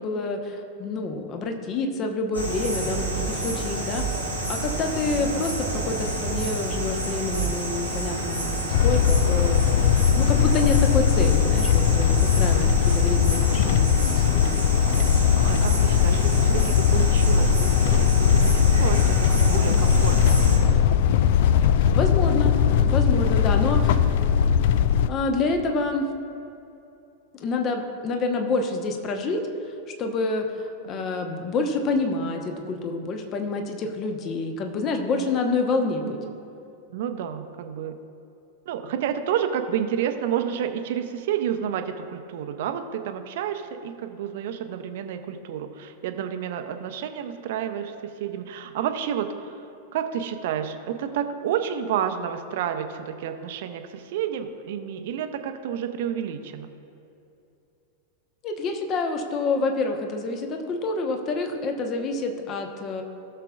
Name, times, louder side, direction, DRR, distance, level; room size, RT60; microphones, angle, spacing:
voice 1, 0.0-4.0 4.5-9.8 10.1-14.6 21.8-24.1 25.1-26.1 27.3-29.4 30.0-36.2 58.4-63.0, left 3 dB, 30° left, 4 dB, 1.0 m, -27 dB
sound 1, 2.3-20.6, right 2 dB, 85° left, 2.2 m, -29 dB
voice 2, 3.9-4.3 15.3-21.0 36.0-36.3 36.9-38.0 38.7-49.5 49.9-56.7, right 9 dB, 55° right, 8 dB, 0.7 m, -30 dB
sound 2, 8.7-25.1, left 8 dB, 50° left, 0.3 m, -20 dB
17.0 x 6.7 x 2.4 m, 2.7 s
figure-of-eight pair, 90°, 0 cm